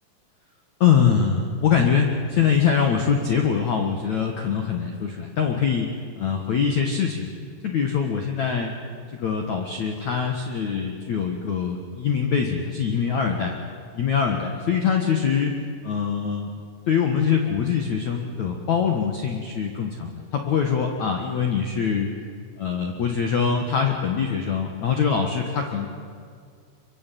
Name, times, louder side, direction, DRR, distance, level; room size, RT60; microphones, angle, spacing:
voice 1, 0.8-5.9 6.2-7.3 7.6-8.7 9.2-13.6 13.9-16.5 16.9-22.1 22.6-25.9, left 7 dB, 75° left, 3 dB, 1.7 m, -23 dB
24.5 x 24.0 x 9.2 m, 2.2 s
omnidirectional pair, 6.0 m